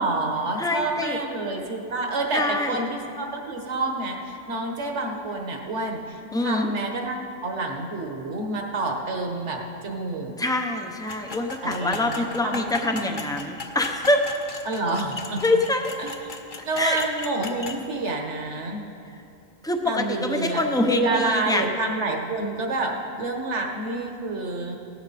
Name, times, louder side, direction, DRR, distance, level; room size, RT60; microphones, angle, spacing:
voice 1, 0.0-10.3 11.6-12.6 12.9-13.2 14.6-15.4 16.0-16.3 16.6-18.8 19.8-24.7, right 2 dB, 60° right, 2 dB, 1.5 m, -28 dB
voice 2, 0.6-1.2 2.3-2.8 6.3-6.7 10.4-14.2 15.4-15.9 16.8-17.0 19.6-21.7, left 2 dB, 5° left, 4 dB, 0.5 m, -25 dB
sound 1, 11.1-17.8, left 3 dB, 40° left, 1.0 m, -37 dB
16.0 x 11.5 x 4.2 m, 2.7 s
omnidirectional pair, 1.4 m